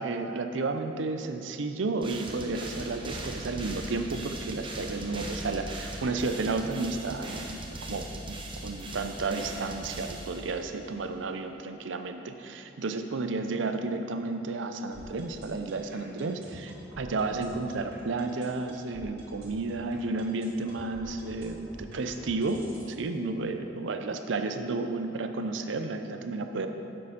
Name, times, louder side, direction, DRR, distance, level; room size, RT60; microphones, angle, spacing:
voice 1, 0.0-7.6 7.9-26.7, right 3 dB, 80° right, 7 dB, 0.6 m, -32 dB
sound 1, 2.0-10.8, right 1 dB, 30° right, 0.8 m, -40 dB
sound 2, 14.9-22.9, right 1 dB, 60° right, 2.0 m, -48 dB
7.4 x 6.8 x 5.1 m, 3.0 s
head